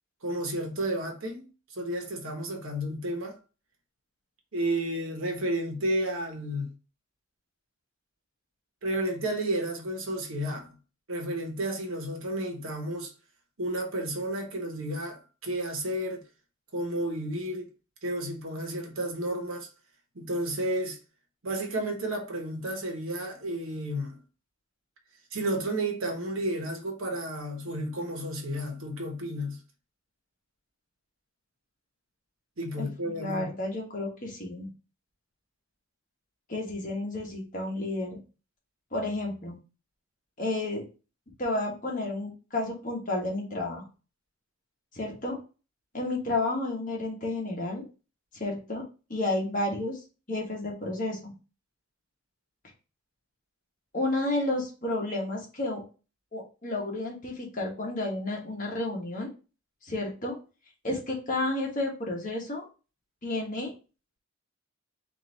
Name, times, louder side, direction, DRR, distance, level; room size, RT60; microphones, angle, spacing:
voice 1, 0.2-3.4 4.5-6.7 8.8-10.7 11.1-13.1 13.6-16.2 16.7-17.7 18.0-19.7 20.1-21.0 21.4-24.1 25.3-29.6 32.6-33.5, right 1 dB, 70° right, 1.1 m, -32 dB
voice 2, 32.8-34.7 36.5-38.2 38.9-39.6 40.4-40.8 41.4-43.8 44.9-45.4 45.9-47.8 48.3-48.8 49.1-51.3 53.9-55.8 56.3-59.3 59.8-60.4 60.8-62.6 63.2-63.7, left 2 dB, 35° left, 1.2 m, -31 dB
4.1 x 2.6 x 3.9 m
head